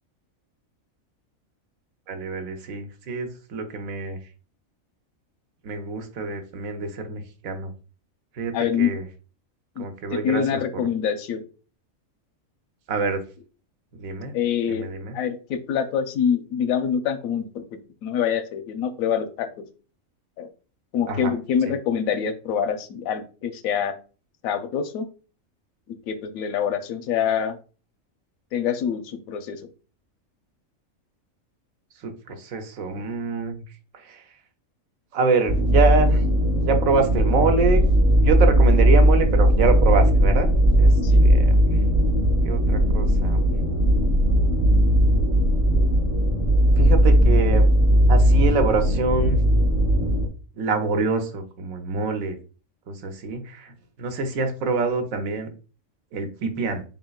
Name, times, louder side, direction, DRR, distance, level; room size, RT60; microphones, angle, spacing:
voice 1, 2.1-4.2 5.6-7.7 8.4-9.0 9.8-10.6 12.9-13.2 13.9-14.3 14.7-15.2 21.1-21.3 21.6-21.7 32.0-33.6 33.9-34.2 35.1-36.2 36.6-37.8 38.2-40.5 40.8-40.9 41.2-41.6 42.4-43.5 46.8-47.7 48.1-49.4 50.6-52.4 52.9-53.7 54.0-55.5 56.1-56.8, right 4 dB, 85° right, 6 dB, 1.1 m, -25 dB
voice 2, 8.5-8.9 9.8-9.9 10.1-11.4 14.3-14.9 15.1-19.6 20.4-20.5 20.9-23.9 24.4-25.1 25.9-27.6 28.5-29.6 41.0-41.2, left 8 dB, 85° left, 9 dB, 1.0 m, -25 dB
sound 1, 35.5-50.3, equal, 15° right, 0.6 m, -18 dB
4.1 x 3.6 x 2.3 m, 0.36 s
omnidirectional pair, 1.4 m